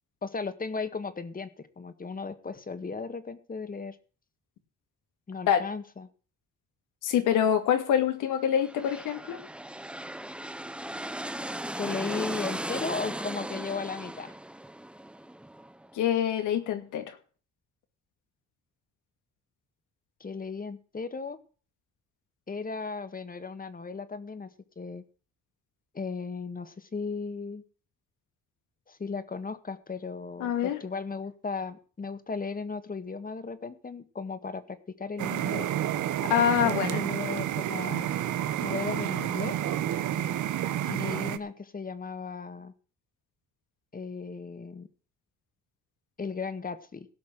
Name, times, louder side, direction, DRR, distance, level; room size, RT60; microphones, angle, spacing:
voice 1, 0.2-4.0 5.3-6.1 11.8-14.3 20.2-21.4 22.5-24.5 24.8-25.0 25.9-27.6 28.9-35.7 36.6-38.1 38.6-39.6 40.8-42.7 43.9-44.9 46.2-47.1, left 4 dB, 30° left, 11 dB, 1.7 m, -36 dB
voice 2, 7.0-9.4 15.9-17.2 30.4-30.8 36.3-37.0, left 9 dB, 85° left, 7 dB, 2.3 m, -25 dB
sound 1, 8.5-16.1, right 1 dB, 5° right, 0.6 m, -37 dB
sound 2, 35.2-41.4, right 11 dB, 75° right, 1.2 m, -30 dB
17.0 x 6.0 x 7.5 m, 0.39 s
cardioid pair, 90°, 30 cm